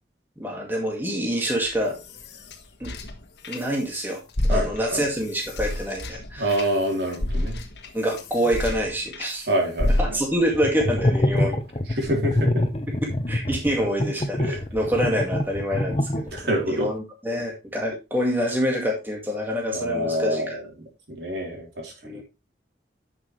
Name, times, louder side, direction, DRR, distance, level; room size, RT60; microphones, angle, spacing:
voice 1, 0.4-2.0 2.8-2.9 3.5-6.6 7.9-9.5 10.0-11.6 12.9-20.6 22.0-22.2, equal, 10° right, 0 dB, 2.0 m, -26 dB
sound 1, 1.6-4.0 4.3-9.3 9.8-10.5, left 1 dB, 70° left, 1.6 m, -29 dB
voice 2, 4.5-5.0 6.4-7.6 9.5-10.2 12.0-12.6 14.4-14.6 16.3-16.9 19.7-20.6 21.1-22.2, right 1 dB, 70° right, 1 dB, 3.5 m, -26 dB
sound 2, 10.5-16.6, left 1 dB, 30° left, 1.0 m, -25 dB
10.5 x 6.2 x 3.1 m, 0.26 s
head